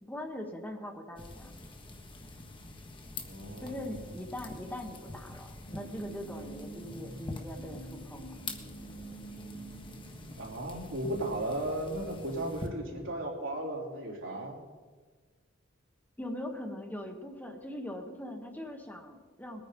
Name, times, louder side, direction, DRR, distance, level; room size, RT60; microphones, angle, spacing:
voice 1, 0.0-1.5 3.6-8.4 16.2-19.6, left 1 dB, 10° left, 3 dB, 1.2 m, -41 dB
sound 1, 1.2-12.7, left 2 dB, 25° left, 1.4 m, -46 dB
voice 2, 3.2-4.0 10.4-14.6, right 1 dB, 75° right, -2 dB, 3.6 m, -36 dB
sound 2, 5.7-10.9, right 3 dB, 55° left, 3.0 m, -46 dB
21.0 x 9.5 x 5.3 m, 1.4 s
head